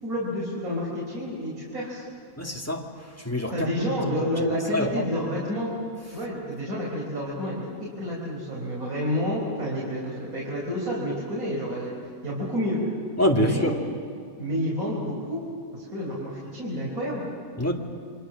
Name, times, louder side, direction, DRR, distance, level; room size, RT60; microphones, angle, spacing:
voice 1, 0.0-2.0 3.5-5.7 6.1-11.9 12.2-12.8 13.4-13.7 14.4-15.4 15.7-17.2, equal, 75° right, -5 dB, 5.0 m, -29 dB
voice 2, 2.4-2.9 3.2-3.7 4.1-4.2 4.7-5.0 13.2-13.7 17.6-17.7, equal, 10° left, 1 dB, 2.1 m, -25 dB
29.0 x 24.5 x 6.3 m, 2.4 s
omnidirectional pair, 1.5 m